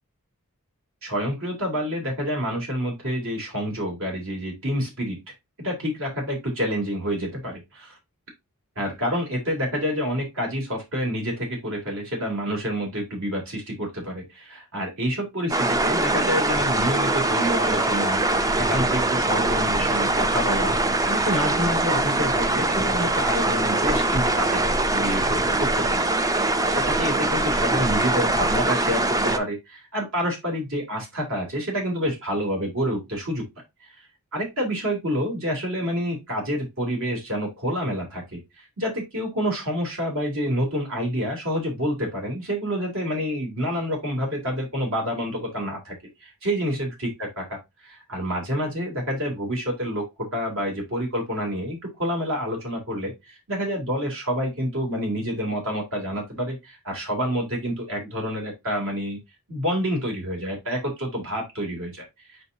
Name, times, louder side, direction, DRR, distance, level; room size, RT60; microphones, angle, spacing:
voice 1, 1.0-8.0 8.8-33.4 34.3-46.0 46.2-59.2 59.5-62.0, equal, 65° right, 0 dB, 3.1 m, -28 dB
sound 1, 15.5-29.4, right 2 dB, 15° right, 0.5 m, -23 dB
6.8 x 5.2 x 2.7 m, 0.20 s
head